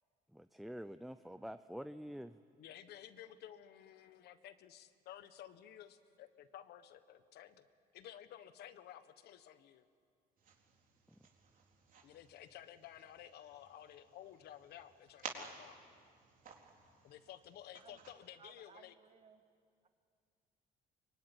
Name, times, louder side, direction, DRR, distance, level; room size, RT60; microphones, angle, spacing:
voice 1, 0.3-2.4 11.1-11.2, equal, ahead, 11 dB, 0.6 m, -47 dB
voice 2, 2.6-7.6 7.9-9.9 12.0-15.8 17.0-18.9, left 11 dB, 75° left, 11 dB, 1.4 m, -54 dB
sound 1, 10.4-18.1, right 5 dB, 55° right, 4.0 m, -54 dB
voice 3, 18.4-19.4 19.8-19.9, right 6 dB, 35° right, 8 dB, 1.9 m, -61 dB
24.0 x 23.0 x 9.9 m, 2.3 s
cardioid pair, 110°, 17 cm